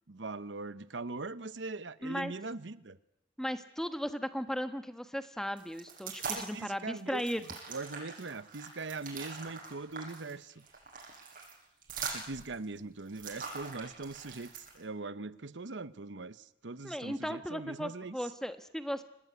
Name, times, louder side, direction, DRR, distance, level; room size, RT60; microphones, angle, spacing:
voice 1, 0.1-3.0 6.3-10.6 12.1-18.3, right 3 dB, 85° right, 14 dB, 0.9 m, -41 dB
voice 2, 2.0-2.3 3.4-7.4 16.8-19.0, equal, 5° left, 9 dB, 1.3 m, -36 dB
sound 1, 5.6-6.6 7.0-14.8, right 5 dB, 50° right, 7.6 m, -43 dB
26.0 x 19.0 x 9.5 m, 0.83 s
head